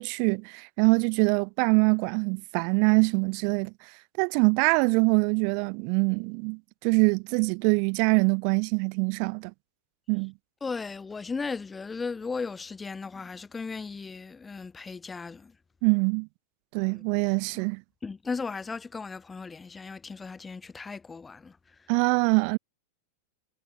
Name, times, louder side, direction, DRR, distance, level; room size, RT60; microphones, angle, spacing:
voice 1, 0.0-3.9 4.2-9.5 10.1-10.3 15.8-16.3 16.7-17.8 21.9-22.6, right 40 dB or more, 45° right, 0.3 m, -24 dB
voice 2, 10.6-15.6 16.9-17.0 18.0-21.9, left 4 dB, 15° left, 2.6 m, -36 dB
figure-of-eight pair, 90°, 0 cm